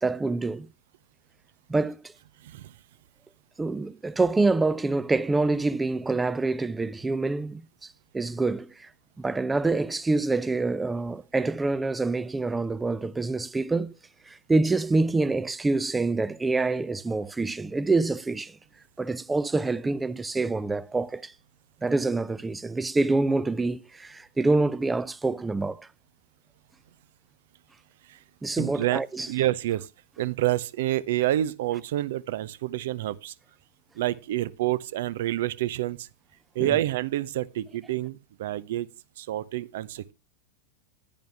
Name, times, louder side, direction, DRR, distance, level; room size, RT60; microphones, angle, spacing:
voice 1, 0.0-0.7 1.7-2.0 3.6-8.9 9.2-13.9 14.3-18.6 19.0-21.3 21.8-25.9 28.4-29.3 36.6-36.8, right 3 dB, 10° right, 0.5 m, -26 dB
voice 2, 28.6-29.0 29.3-29.9 30.2-33.3 34.0-36.1 36.5-38.9 39.2-40.1, right 14 dB, 55° right, 0.7 m, -28 dB
10.5 x 10.5 x 3.4 m
figure-of-eight pair, 90°, 0 cm